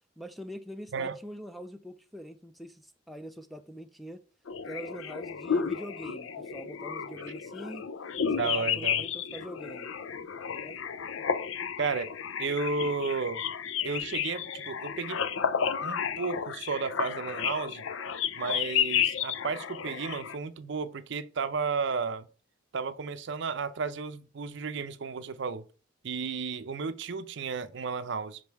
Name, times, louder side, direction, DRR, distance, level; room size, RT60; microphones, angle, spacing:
voice 1, 0.2-4.2 4.6-7.9 8.3-9.9 10.5-10.8, equal, ahead, 0.4 m, -44 dB
sound 1, 4.5-20.3, left 7 dB, 80° left, 0.5 m, -32 dB
voice 2, 8.3-9.0 11.8-12.1 12.4-13.4 13.8-15.2 15.8-17.8 18.4-22.3 22.7-25.6 26.0-28.4, right 4 dB, 65° right, 0.5 m, -33 dB
5.4 x 5.2 x 4.6 m
head